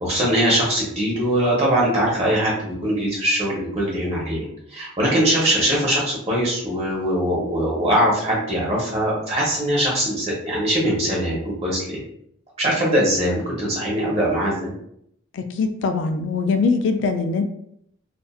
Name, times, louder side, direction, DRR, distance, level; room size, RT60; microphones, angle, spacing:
voice 1, 0.0-4.4 4.7-12.0 12.6-14.7, right 1 dB, 30° right, -4 dB, 0.9 m, -21 dB
voice 2, 15.3-17.4, left 4 dB, 60° left, 6 dB, 0.3 m, -22 dB
2.5 x 2.5 x 2.3 m, 0.70 s
head